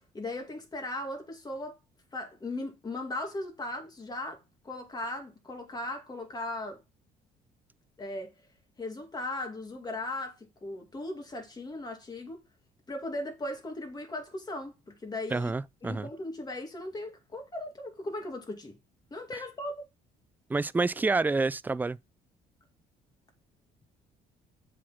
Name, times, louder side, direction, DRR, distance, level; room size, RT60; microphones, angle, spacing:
voice 1, 0.1-1.8 2.1-6.8 8.0-8.3 8.8-12.4 12.9-15.5 15.8-18.8 19.1-19.9, left 2 dB, 25° left, 2.5 m, -38 dB
voice 2, 15.3-16.1 19.3-19.4 20.5-22.0, right 3 dB, 10° right, 0.3 m, -28 dB
7.4 x 4.3 x 5.7 m
cardioid pair, 110°, 17 cm